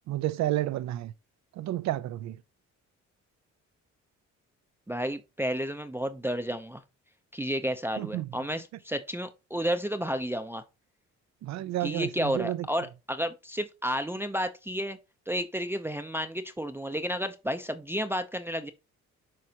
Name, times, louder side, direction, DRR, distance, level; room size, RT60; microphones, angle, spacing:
voice 1, 0.1-1.1 1.5-2.4 8.0-8.3 11.4-12.7, right 14 dB, 65° right, 0.5 m, -31 dB
voice 2, 4.9-6.8 7.3-10.6 11.8-15.0 15.3-18.7, equal, 10° right, 0.5 m, -31 dB
7.6 x 4.8 x 2.8 m
cardioid pair, 90°, 30 cm